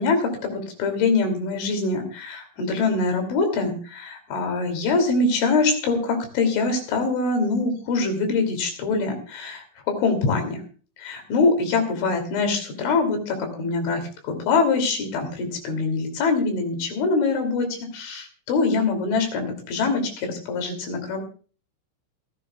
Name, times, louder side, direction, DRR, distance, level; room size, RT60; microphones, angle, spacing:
voice 1, 0.0-10.6 11.0-17.7 17.9-21.2, left 3 dB, 75° left, 5 dB, 5.2 m, -24 dB
28.0 x 9.9 x 2.3 m, 0.39 s
omnidirectional pair, 5.5 m